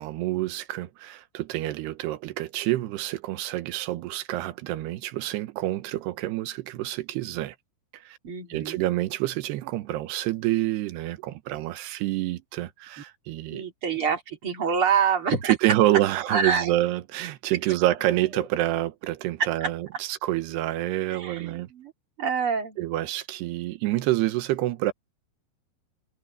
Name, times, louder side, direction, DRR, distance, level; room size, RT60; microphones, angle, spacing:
voice 1, 0.0-7.6 7.9-8.2 8.5-13.6 15.4-21.7 22.8-24.9, right 16 dB, 80° right, 3.1 m, -27 dB
voice 2, 8.2-8.8 13.5-15.5 16.3-16.7 18.3-18.5 19.4-19.7 21.1-21.9 22.2-22.8, right 6 dB, 35° right, 3.2 m, -26 dB
omnidirectional pair, 4.8 m